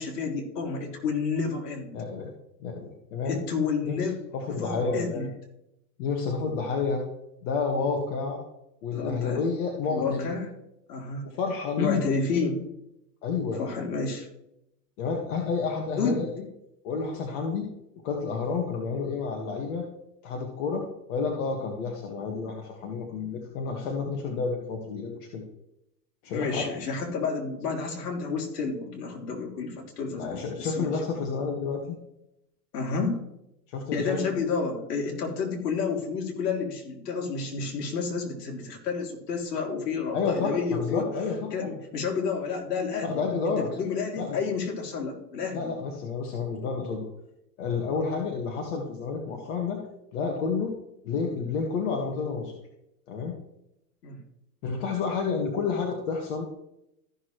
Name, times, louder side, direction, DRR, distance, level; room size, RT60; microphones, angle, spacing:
voice 1, 0.0-1.9 3.2-4.1 4.5-5.3 8.9-9.5 9.9-10.5 10.9-11.3 11.8-12.6 13.6-14.3 16.0-16.2 26.3-31.2 32.7-33.2 33.9-41.0 41.5-43.1 43.6-45.7 54.0-54.2, left 4 dB, 75° left, 1 dB, 3.1 m, -30 dB
voice 2, 1.9-2.3 2.6-3.4 3.8-4.1 4.3-5.3 6.0-7.0 7.4-8.4 8.8-10.3 11.2-12.0 13.2-13.6 15.0-16.3 16.8-17.7 18.0-19.8 20.2-25.4 26.2-26.6 30.2-32.0 33.7-34.2 40.1-41.7 43.0-43.7 44.2-44.4 45.5-47.1 47.6-49.8 50.1-50.7 51.0-52.6 53.1-53.4 54.6-56.5, left 5 dB, 60° left, 0 dB, 1.9 m, -30 dB
14.5 x 6.5 x 3.2 m, 0.83 s
hypercardioid pair, 115°, 49 cm